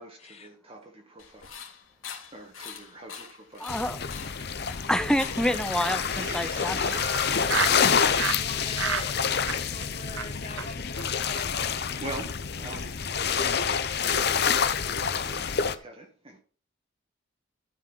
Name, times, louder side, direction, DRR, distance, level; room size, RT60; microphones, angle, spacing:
voice 1, 0.0-1.5 2.3-3.7 4.4-4.7 11.7-12.3 12.6-16.4, right 2 dB, 30° right, 1.4 m, -44 dB
sound 1, 1.2-6.9, left 7 dB, 80° left, 2.7 m, -44 dB
voice 2, 3.6-4.0 4.9-6.8 7.4-7.5, equal, 5° left, 0.6 m, -27 dB
sound 2, 3.7-15.8, left 6 dB, 50° left, 0.7 m, -27 dB
Laughter, 6.0-7.8 8.2-8.4 8.7-9.1 9.4-9.9 10.1-10.3 10.6-10.7 10.9-11.0 11.3-11.4 11.7-12.0, right 7 dB, 70° right, 0.6 m, -32 dB
voice 3, 6.5-7.0 7.4-12.1 14.4-14.5, left 2 dB, 30° left, 2.1 m, -42 dB
12.5 x 5.4 x 5.5 m
head